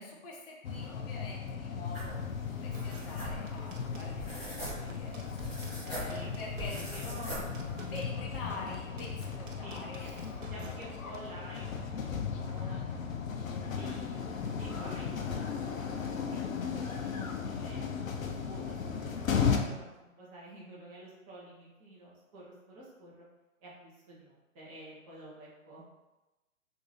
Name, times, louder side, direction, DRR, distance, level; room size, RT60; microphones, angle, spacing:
voice 1, 0.0-6.9 7.9-10.5, left 2 dB, 45° left, -2 dB, 0.7 m, -46 dB
sound 1, 0.6-19.6, left 6 dB, 80° left, 0.6 m, -36 dB
sound 2, 1.9-8.0, equal, ahead, 0.3 m, -43 dB
sound 3, 2.7-11.3, right 2 dB, 70° right, 0.8 m, -50 dB
voice 2, 5.7-7.4 7.9-8.2 9.6-9.8 10.4-13.0 13.7-23.3 23.6-25.8, right 1 dB, 20° right, -6 dB, 1.0 m, -50 dB
3.7 x 2.6 x 3.1 m, 1.1 s
hypercardioid pair, 135°, 40 cm